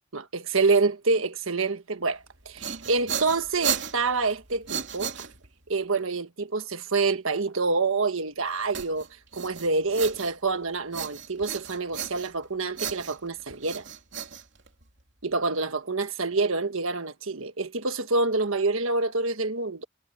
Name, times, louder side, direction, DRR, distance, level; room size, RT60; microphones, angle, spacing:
voice 1, 0.1-5.3 5.7-9.1 9.3-13.8 15.2-19.8, right 3 dB, 70° right, 1.5 m, -27 dB
sound 1, 2.3-5.7 8.7-10.6 10.9-12.4 12.8-15.0, right 7 dB, 55° right, 3.3 m, -34 dB
head